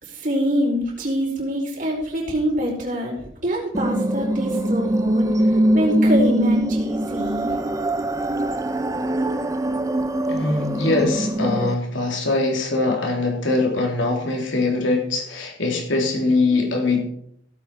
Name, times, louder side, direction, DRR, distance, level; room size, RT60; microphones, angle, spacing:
voice 1, 0.0-7.5, equal, 40° right, -2 dB, 4.9 m, -25 dB
sound 1, 3.7-11.7, right 1 dB, 15° right, 0.6 m, -22 dB
voice 2, 10.3-17.0, left 2 dB, 80° left, 1 dB, 3.4 m, -22 dB
17.0 x 8.4 x 4.9 m, 0.69 s
head